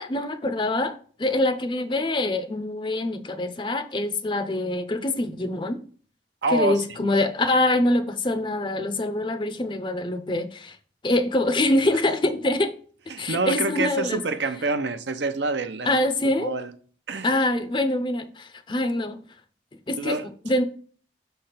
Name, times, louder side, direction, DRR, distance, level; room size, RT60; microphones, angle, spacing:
voice 1, 0.0-5.8 6.5-10.8 11.0-12.7 13.2-14.2 15.8-16.5 17.2-19.2 19.9-20.2 20.4-20.6, left 1 dB, 25° left, 0.6 m, -24 dB
voice 2, 6.4-7.0 13.1-16.1 16.4-16.7 17.1-17.3 20.0-20.3, right 3 dB, 75° right, 0.7 m, -27 dB
6.5 x 3.4 x 5.8 m
head